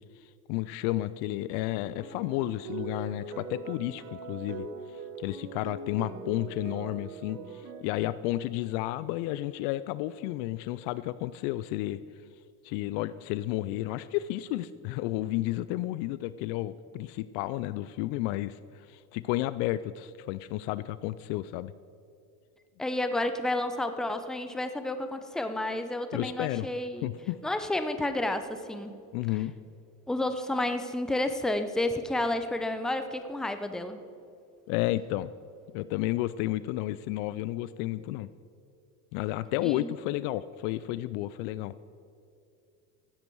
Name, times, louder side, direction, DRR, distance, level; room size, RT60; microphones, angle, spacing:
voice 1, 0.5-4.7 5.2-12.0 12.6-21.7 26.1-26.7 27.0-27.4 29.1-29.5 34.7-35.3 35.7-38.3 39.1-41.7, left 16 dB, 60° left, 16 dB, 0.5 m, -32 dB
sound 1, 1.7-7.8, right 4 dB, 55° right, 1.4 m, -41 dB
voice 2, 22.8-27.1 27.4-29.0 30.1-34.0 39.6-39.9, left 1 dB, ahead, 9 dB, 0.6 m, -31 dB
15.5 x 8.3 x 4.6 m, 2.6 s
hypercardioid pair, 90°, 48 cm